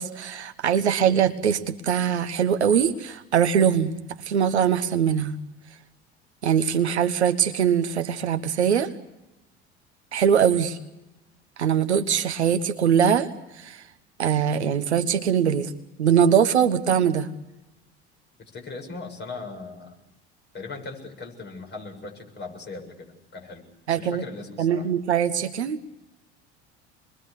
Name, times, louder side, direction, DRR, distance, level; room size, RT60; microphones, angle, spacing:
voice 1, 0.0-3.9 4.2-5.4 6.4-8.9 10.1-10.8 11.6-13.8 14.2-15.7 16.0-17.3 23.9-24.2 24.6-25.8, right 8 dB, 75° right, 9 dB, 1.3 m, -22 dB
voice 2, 18.5-19.9 20.5-23.1 23.3-24.9, left 3 dB, 30° left, 3 dB, 7.4 m, -39 dB
27.5 x 22.5 x 8.4 m, 0.97 s
figure-of-eight pair, 65°, 34 cm